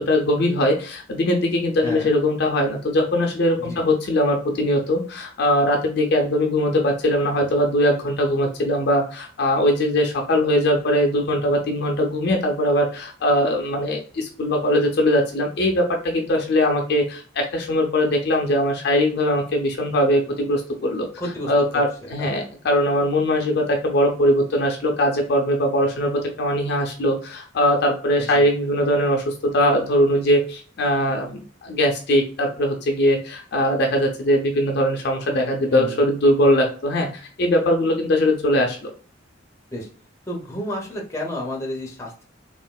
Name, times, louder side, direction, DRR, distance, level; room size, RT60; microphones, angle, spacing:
voice 1, 0.0-21.1 21.5-38.9, left 1 dB, 55° left, 2 dB, 0.5 m, -21 dB
voice 2, 21.2-21.5 22.0-22.3 28.3-28.5 35.7-36.0 39.7-39.9 40.3-42.2, left 1 dB, 15° left, -1 dB, 0.8 m, -31 dB
3.5 x 2.4 x 2.2 m, 0.41 s
head